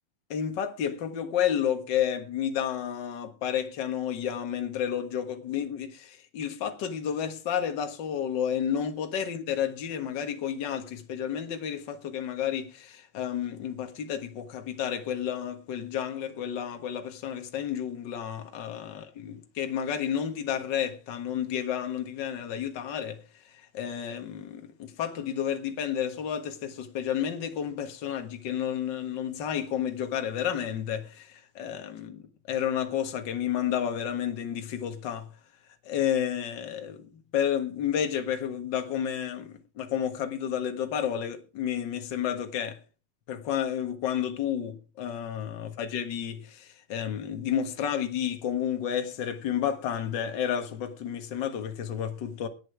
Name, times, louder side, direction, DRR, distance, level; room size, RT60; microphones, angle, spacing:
voice 1, 0.3-23.2 23.7-35.3 35.8-42.8 43.3-52.5, left 9 dB, 50° left, 1.4 m, -31 dB
18.0 x 7.4 x 4.7 m
omnidirectional pair, 3.9 m